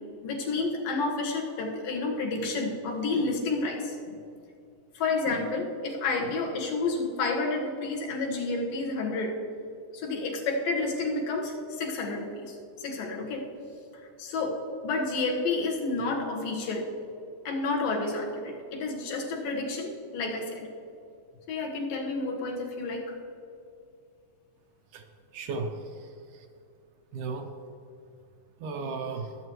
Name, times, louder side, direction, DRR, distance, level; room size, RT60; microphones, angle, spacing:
voice 1, 0.2-4.2 4.9-9.4 9.9-13.5 14.2-16.9 17.4-20.7 21.5-23.2, left 3 dB, 90° left, 0 dB, 3.2 m, -30 dB
voice 2, 25.3-26.5 27.1-27.6 28.6-29.4, right 4 dB, 75° right, 4 dB, 2.2 m, -35 dB
21.5 x 7.9 x 3.1 m, 2.5 s
omnidirectional pair, 3.9 m